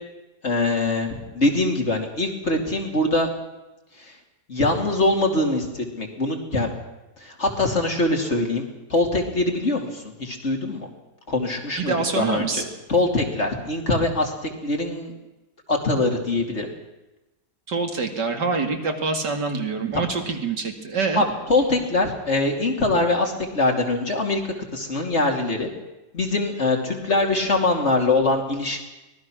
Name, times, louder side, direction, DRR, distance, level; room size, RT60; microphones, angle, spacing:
voice 1, 0.4-3.3 4.0-4.1 4.5-6.7 7.2-10.9 11.3-12.6 12.9-14.3 14.6-15.1 15.7-16.7 19.9-20.0 21.1-24.4 24.7-25.7 26.1-28.9, left 2 dB, 40° left, 2 dB, 3.1 m, -23 dB
voice 2, 11.8-12.6 17.7-21.2, right 4 dB, 75° right, 4 dB, 3.0 m, -25 dB
24.5 x 18.5 x 6.3 m, 1.0 s
omnidirectional pair, 1.9 m